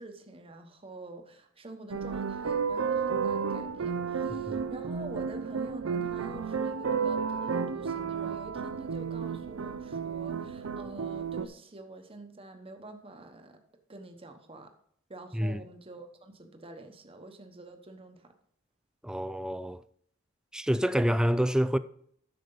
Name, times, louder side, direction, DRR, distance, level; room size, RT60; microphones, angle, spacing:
voice 1, 0.0-13.6 13.9-14.7 15.1-18.3, right 2 dB, 25° right, 1.1 m, -46 dB
sound 1, 1.9-11.5, right 6 dB, 75° right, 0.5 m, -32 dB
voice 2, 4.3-4.6 15.3-15.6 19.0-19.8 20.5-21.8, equal, 5° right, 0.3 m, -27 dB
10.5 x 6.6 x 3.9 m
head